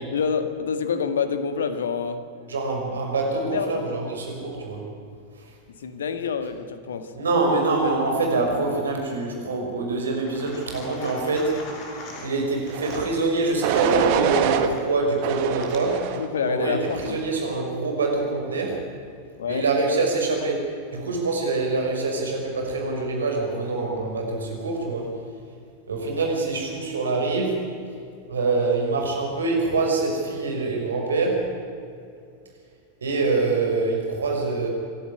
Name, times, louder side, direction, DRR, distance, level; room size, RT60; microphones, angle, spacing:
voice 1, 0.1-2.2 3.4-3.9 5.8-7.1 16.1-17.2 19.4-19.6, left 6 dB, 65° left, 10 dB, 1.8 m, -27 dB
voice 2, 2.5-4.8 7.2-11.6 12.2-18.8 19.5-20.7 20.9-25.1 25.9-27.7 28.3-31.5 33.0-34.7, right 3 dB, 70° right, 1 dB, 5.7 m, -25 dB
sound 1, 10.3-16.0 16.8-17.6, left 2 dB, 40° left, 5.2 m, -40 dB
sound 2, 12.7-13.1 13.6-14.7 15.2-16.3 16.8-17.3, right 10 dB, 45° right, 1.8 m, -25 dB
26.5 x 12.0 x 10.0 m, 2.4 s
figure-of-eight pair, 90°, 0 cm